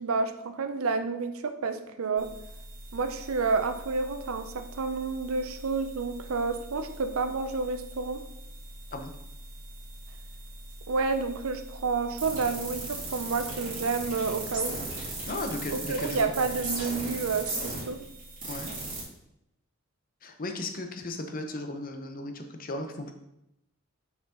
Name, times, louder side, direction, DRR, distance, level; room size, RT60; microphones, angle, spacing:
voice 1, 0.0-2.3 2.9-8.2 10.9-14.8 15.7-18.0, right 4 dB, 85° right, 8 dB, 0.6 m, -30 dB
sound 1, 2.2-19.0, right 2 dB, 40° right, 2.4 m, -39 dB
voice 2, 15.2-16.3 18.5-18.7 20.2-23.1, left 2 dB, 40° left, 6 dB, 0.7 m, -36 dB
6.5 x 4.8 x 3.7 m, 0.84 s
head